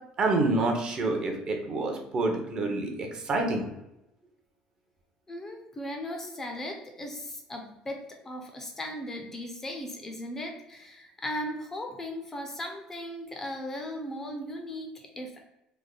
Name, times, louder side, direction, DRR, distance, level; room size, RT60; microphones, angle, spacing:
voice 1, 0.2-3.7, right 2 dB, 35° right, 3 dB, 0.6 m, -27 dB
voice 2, 5.3-8.0 8.2-15.4, left 1 dB, 15° left, 3 dB, 0.5 m, -37 dB
3.3 x 2.1 x 3.7 m, 0.88 s
cardioid pair, 155°, 2 cm